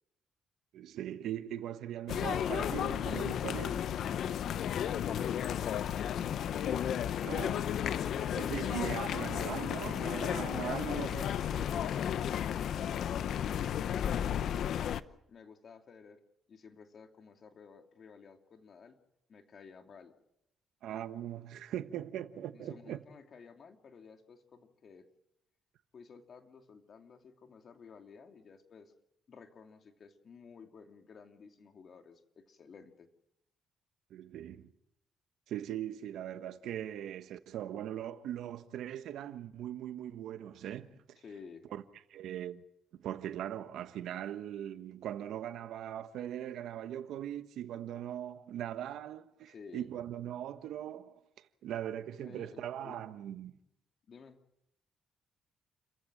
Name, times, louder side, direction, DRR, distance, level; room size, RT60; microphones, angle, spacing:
voice 1, 0.7-4.0 7.2-7.8 8.3-11.7 20.8-23.0 34.1-34.7 35.5-41.2 41.7-41.8 42.1-42.6 42.9-51.2 51.6-53.5, right 11 dB, 80° right, 1.2 m, -40 dB
sound 1, 2.1-15.0, left 9 dB, 70° left, 0.8 m, -33 dB
voice 2, 4.7-6.5 10.7-11.2 15.3-16.2 16.5-19.0 19.3-20.1 22.5-25.1 25.9-28.9 29.3-33.1 41.2-41.7 49.4-49.9 52.2-53.1 54.1-54.4, left 5 dB, 50° left, 2.8 m, -53 dB
30.0 x 15.0 x 7.6 m
cardioid pair, 90°, 0 cm